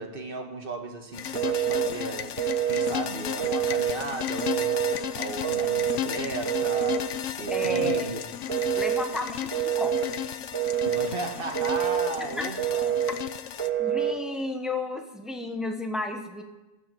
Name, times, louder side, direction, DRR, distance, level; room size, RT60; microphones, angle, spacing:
voice 1, 0.0-8.2 8.5-8.8 10.9-13.1, right 3 dB, 50° right, 4 dB, 1.7 m, -36 dB
sound 1, 1.1-13.7, left 10 dB, 90° left, 1.0 m, -34 dB
Telephone, 1.4-1.9 2.4-2.9 3.4-4.0 4.4-5.0 5.4-6.0 6.5-7.0 7.5-8.0 8.5-9.1 9.5-10.1 10.5-11.1 11.5-12.1 12.6-13.1 13.6-14.2, right 9 dB, 25° right, 1.5 m, -26 dB
voice 2, 7.5-8.1 8.7-9.9 12.4-12.5 13.8-16.4, left 2 dB, ahead, 4 dB, 1.1 m, -32 dB
13.5 x 9.6 x 6.9 m, 1.1 s
omnidirectional pair, 1.2 m